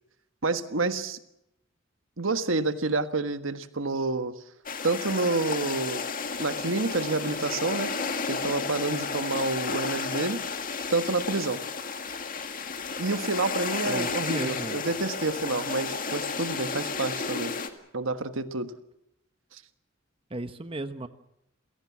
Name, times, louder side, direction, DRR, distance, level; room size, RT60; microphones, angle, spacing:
voice 1, 0.4-1.2 2.2-4.4 4.8-6.0 6.4-7.9 8.3-10.4 10.9-11.6 13.0-17.5 17.9-18.7 19.5-19.6, right 3 dB, 85° right, 10 dB, 1.5 m, -28 dB
sound 1, 4.7-17.7, left 4 dB, 45° left, 1.9 m, -32 dB
voice 2, 13.9-14.8 20.3-21.1, right 2 dB, 30° right, 10 dB, 1.1 m, -35 dB
29.0 x 17.0 x 7.4 m, 0.85 s
head